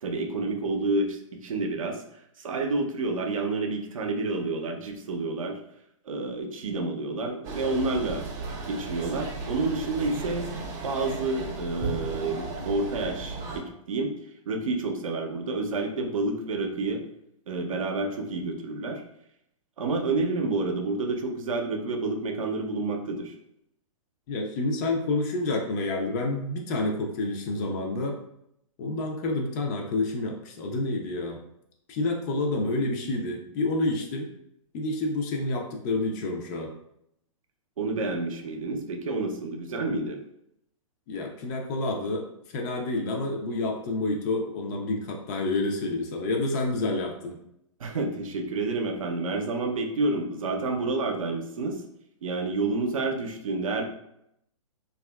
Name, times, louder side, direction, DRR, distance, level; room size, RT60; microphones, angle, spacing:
voice 1, 0.0-2.0 2.4-5.6 6.1-8.3 8.7-10.5 10.8-14.1 14.5-17.0 17.5-19.0 19.8-23.3 37.8-40.2 47.8-51.8 52.2-53.8, right 3 dB, 80° right, 4 dB, 0.5 m, -29 dB
sound 1, 7.4-13.6, right 3 dB, 25° right, 0.5 m, -35 dB
voice 2, 24.3-28.2 28.8-31.4 31.9-34.3 34.7-36.7 41.1-42.3 42.5-47.4, left 2 dB, 35° left, 2 dB, 0.5 m, -28 dB
2.7 x 2.3 x 2.2 m, 0.77 s
hypercardioid pair, 130°, 17 cm